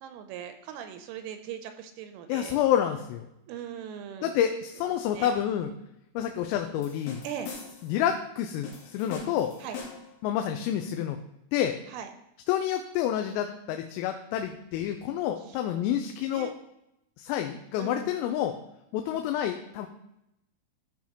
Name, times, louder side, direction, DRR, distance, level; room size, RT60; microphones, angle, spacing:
voice 1, 0.0-2.6 3.5-4.4 5.1-5.3 7.2-7.5 9.6-9.8 11.9-12.1 15.5-16.0 16.3-16.5 17.8-18.1, right 9 dB, 85° right, 7 dB, 3.1 m, -40 dB
voice 2, 2.3-3.3 4.2-5.7 6.2-7.2 7.8-9.5 10.2-11.2 11.5-11.7 12.5-16.5 17.2-18.5 18.9-19.9, left 10 dB, 85° left, 5 dB, 3.2 m, -28 dB
sound 1, 6.8-8.0 8.6-10.2, left 5 dB, 65° left, 3.3 m, -42 dB
13.5 x 5.8 x 2.9 m, 0.84 s
omnidirectional pair, 5.9 m